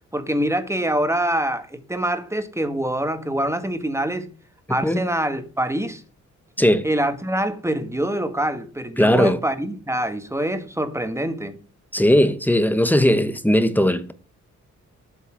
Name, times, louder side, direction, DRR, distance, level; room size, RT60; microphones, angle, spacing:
voice 1, 0.1-4.3 4.7-6.0 6.8-11.6, right 1 dB, 10° right, 1.4 m, -25 dB
voice 2, 4.7-5.0 6.6-6.9 9.0-9.4 11.9-14.1, equal, 5° left, 1.1 m, -18 dB
8.3 x 5.6 x 6.1 m
cardioid pair, 75°, 29 cm